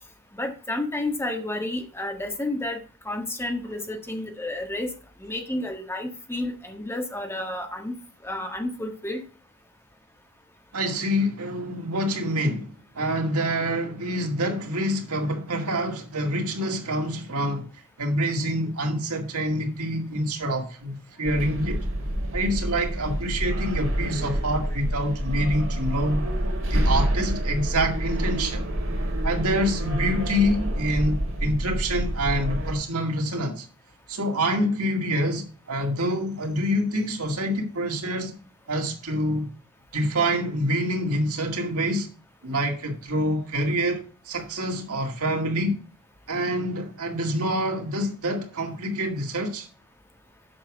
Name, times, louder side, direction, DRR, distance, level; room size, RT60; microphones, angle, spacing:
voice 1, 0.3-2.8 3.0-4.9 5.2-7.9 8.2-9.2, left 1 dB, 10° left, 1.5 m, -31 dB
voice 2, 10.7-17.7 18.0-21.8 22.3-26.2 26.7-28.7 29.2-33.7 34.1-38.3 38.7-39.5 39.9-42.1 42.4-45.8 46.3-49.7, equal, 85° right, 2.1 m, -26 dB
sound 1, 21.2-32.7, right 1 dB, 65° right, 2.5 m, -27 dB
7.6 x 6.2 x 6.0 m
head